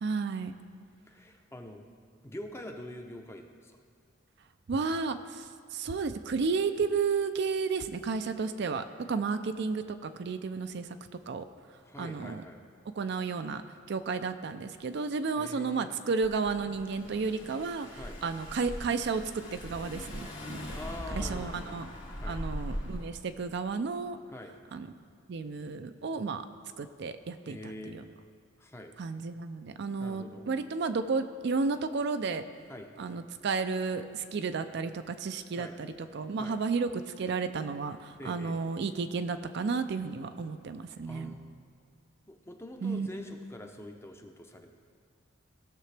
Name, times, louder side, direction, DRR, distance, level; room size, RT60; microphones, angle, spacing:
voice 1, 0.0-0.5 4.7-11.0 11.3-11.5 12.0-12.4 13.0-13.6 13.9-20.7 21.1-21.9 22.3-24.2 24.7-24.9 25.3-26.5 26.8-27.6 27.9-28.0 29.0-32.4 33.0-41.3 42.8-43.1, right 4 dB, 55° right, 9 dB, 0.4 m, -32 dB
voice 2, 1.1-1.9 2.2-3.8 11.8-12.6 15.4-15.9 18.0-18.4 20.7-21.7 22.2-22.4 24.3-24.5 27.4-28.0 28.6-28.9 30.0-30.5 32.7-32.9 35.6-35.8 36.4-36.6 38.2-38.6 41.0-41.6 42.3-44.7, left 1 dB, 15° left, 4 dB, 0.6 m, -45 dB
Car / Engine, 16.2-23.2, equal, 70° left, 2.3 m, -40 dB
16.5 x 6.7 x 3.3 m, 2.2 s
head